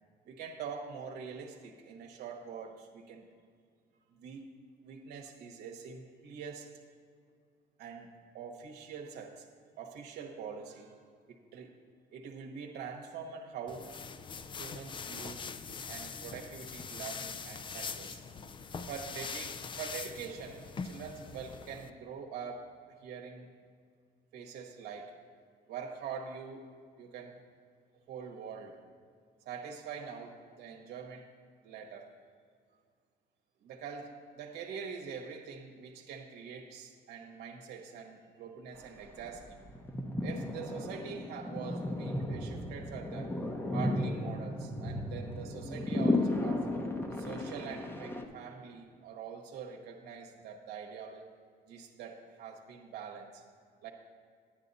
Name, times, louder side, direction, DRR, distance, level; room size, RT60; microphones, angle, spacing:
voice 1, 0.2-3.3 4.1-4.5 4.8-6.7 7.8-9.5 9.8-11.0 11.3-11.7 12.1-13.9 14.6-15.5 15.9-18.2 18.9-23.5 24.3-25.2 25.7-27.4 28.1-28.8 29.4-31.3 31.6-32.1 33.6-39.7 40.2-43.4 43.7-46.7 47.1-51.3 51.7-53.5 53.8-53.9, right 6 dB, 75° right, 1 dB, 1.0 m, -44 dB
sound 1, 13.7-21.9, left 5 dB, 30° left, 0.4 m, -42 dB
sound 2, 38.7-38.8 39.0-48.2, left 1 dB, 15° left, 0.8 m, -34 dB
10.0 x 10.0 x 4.0 m, 2.1 s
cardioid pair, 110°, 17 cm